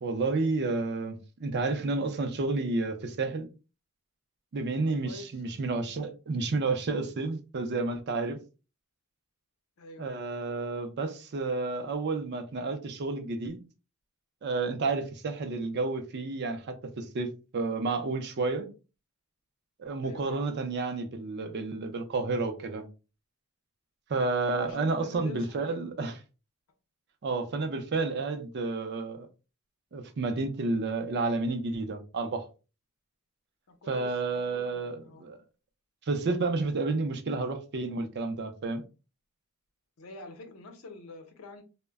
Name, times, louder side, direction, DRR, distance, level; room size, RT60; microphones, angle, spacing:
voice 1, 0.0-3.5 4.5-8.4 10.0-13.6 14.4-18.7 19.8-22.8 24.1-26.1 27.2-29.3 29.9-32.5 33.9-35.4 36.0-38.8, right 3 dB, 50° right, 0.5 m, -31 dB
voice 2, 4.9-5.4 9.8-10.0 20.0-20.4 24.5-25.8 33.7-35.3 40.0-41.6, left 3 dB, 75° left, 0.6 m, -46 dB
2.1 x 2.0 x 3.4 m
head